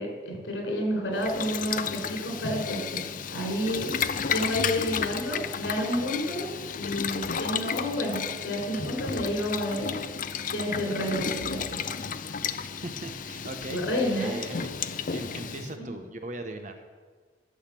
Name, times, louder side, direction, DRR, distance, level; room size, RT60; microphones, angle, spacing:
voice 1, 0.0-3.0 3.3-3.9 4.3-6.5 6.7-10.0 10.5-11.8 13.7-14.4 15.8-15.9, equal, 90° left, 0 dB, 4.1 m, -30 dB
Boiling, 1.2-15.7, left 6 dB, 45° left, 0.5 m, -33 dB
voice 2, 4.0-4.3 12.8-13.8 14.1-14.6 15.1-16.8, right 2 dB, 45° right, 6 dB, 0.9 m, -39 dB
12.0 x 6.5 x 7.5 m, 1.5 s
head